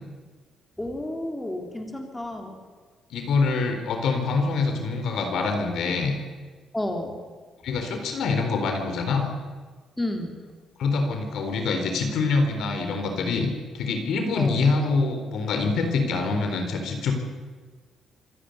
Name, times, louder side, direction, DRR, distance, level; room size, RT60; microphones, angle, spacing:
voice 1, 0.8-2.6 6.7-7.2 10.0-10.4 14.4-14.6, left 1 dB, 10° left, 3 dB, 3.6 m, -31 dB
voice 2, 3.1-6.1 7.6-9.3 10.8-17.1, left 4 dB, 75° left, 5 dB, 4.0 m, -25 dB
26.0 x 11.0 x 9.6 m, 1.4 s
cardioid pair, 90°, 0 cm